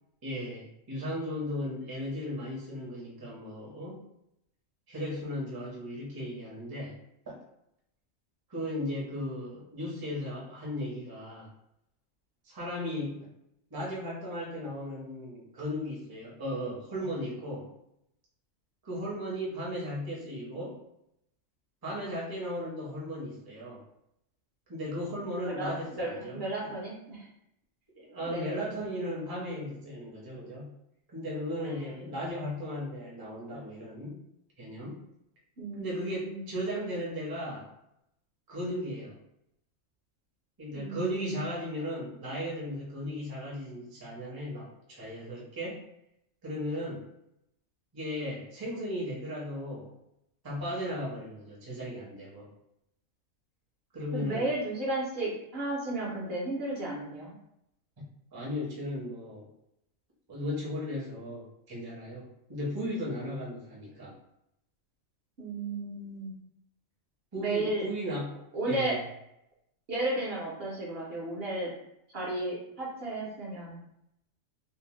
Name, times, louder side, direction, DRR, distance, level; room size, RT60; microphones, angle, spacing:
voice 1, 0.2-4.0 4.9-7.0 7.3-7.4 8.5-11.5 12.4-13.3 13.7-17.7 18.8-20.8 21.8-23.8 24.7-26.4 28.0-30.7 31.1-34.2 34.6-35.0 35.8-37.7 38.5-39.2 40.6-45.8 46.4-47.1 47.9-49.9 50.4-52.5 53.9-54.5 58.3-59.5 60.3-64.1 67.3-69.0, equal, 25° right, -5 dB, 0.6 m, -36 dB
voice 2, 25.5-27.3 28.2-28.7 31.6-32.1 35.6-36.5 40.7-41.5 54.1-57.3 65.4-66.3 67.4-67.9 68.5-69.0 69.9-71.7 72.1-73.8, right 2 dB, 55° right, -4 dB, 0.9 m, -34 dB
2.6 x 2.0 x 3.0 m, 0.78 s
omnidirectional pair, 1.4 m